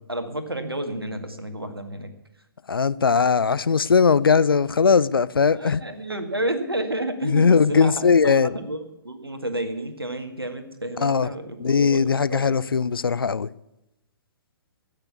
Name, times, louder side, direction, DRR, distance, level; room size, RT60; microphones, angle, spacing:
voice 1, 0.1-2.1 5.5-12.5, right 1 dB, 85° right, 1.9 m, -31 dB
voice 2, 2.7-5.8 7.2-8.5 11.0-11.3 11.6-13.5, left 5 dB, 70° left, 0.5 m, -19 dB
16.5 x 6.8 x 8.3 m
figure-of-eight pair, 120°, 12 cm